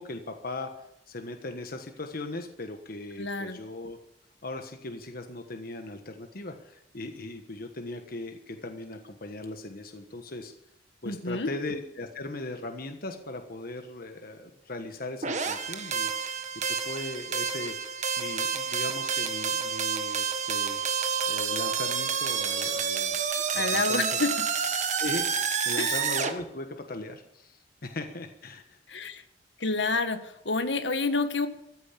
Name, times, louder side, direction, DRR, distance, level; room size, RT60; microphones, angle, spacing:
voice 1, 0.0-4.0 4.4-10.5 11.0-16.4 16.7-23.2 23.5-24.2 25.0-28.8, left 2 dB, 55° left, 5 dB, 1.3 m, -39 dB
voice 2, 3.2-3.6 11.0-11.5 23.5-24.3 25.8-25.9 28.9-29.2 29.6-30.2 30.4-31.5, left 3 dB, 75° left, 9 dB, 1.6 m, -28 dB
sound 1, 15.2-26.3, right 6 dB, 45° right, 1.5 m, -29 dB
14.5 x 9.4 x 8.5 m, 0.82 s
head